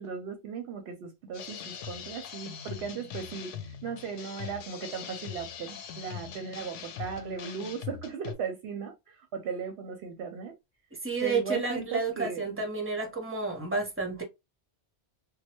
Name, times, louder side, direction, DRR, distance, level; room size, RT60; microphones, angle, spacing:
voice 1, 0.0-10.5 11.2-12.6, right 6 dB, 65° right, 0.8 m, -37 dB
sound 1, 1.3-8.3, left 8 dB, 85° left, 0.9 m, -41 dB
voice 2, 11.0-14.2, right 4 dB, 10° right, 0.9 m, -30 dB
3.0 x 2.2 x 2.9 m
omnidirectional pair, 1.2 m